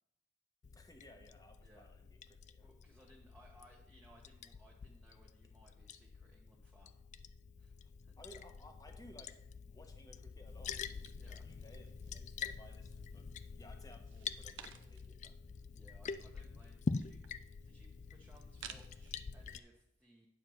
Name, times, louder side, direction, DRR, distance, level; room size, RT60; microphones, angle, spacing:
Liquid, 0.6-19.6, left 5 dB, 40° left, 0.3 m, -46 dB
voice 1, 0.7-2.7 7.8-7.9 8.2-9.3 9.6-13.2 13.6-15.4, equal, 20° left, 4 dB, 1.1 m, -59 dB
voice 2, 2.6-6.9 7.6-7.7 8.0-8.1 11.1-11.5 15.7-20.3, right 1 dB, 10° right, -3 dB, 1.1 m, -64 dB
sound 1, 11.0-12.3 12.7-13.4 13.9-15.2 15.6-15.7 15.8-19.1, right 8 dB, 80° right, 0.7 m, -56 dB
9.3 x 4.5 x 6.3 m, 0.84 s
head